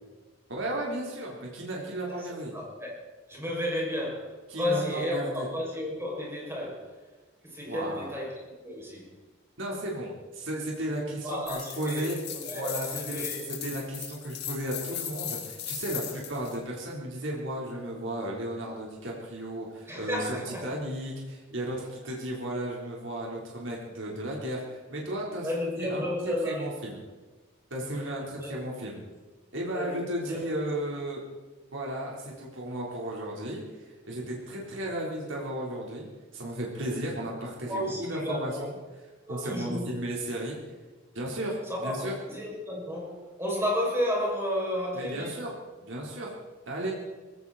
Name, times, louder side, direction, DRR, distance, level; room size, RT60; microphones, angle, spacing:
voice 1, 0.5-2.6 4.5-5.5 7.6-8.1 9.6-12.2 12.5-26.0 26.4-27.0 27.7-29.0 29.5-31.2 31.7-33.6 34.1-36.1 36.3-38.8 39.3-40.6 41.1-42.1 44.9-45.5 45.8-46.3 46.7-46.9, right 1 dB, 70° right, -3 dB, 3.9 m, -34 dB
voice 2, 2.5-3.0 3.3-6.9 7.4-8.3 8.6-9.1 11.2-13.4 19.9-20.6 25.4-26.7 28.4-28.5 29.7-30.4 36.8-37.0 37.7-38.7 39.3-40.0 41.7-45.4, left 1 dB, 15° right, -3 dB, 6.4 m, -32 dB
sound 1, 11.5-16.5, left 9 dB, 55° left, 3.6 m, -37 dB
20.0 x 17.0 x 4.3 m, 1.3 s
head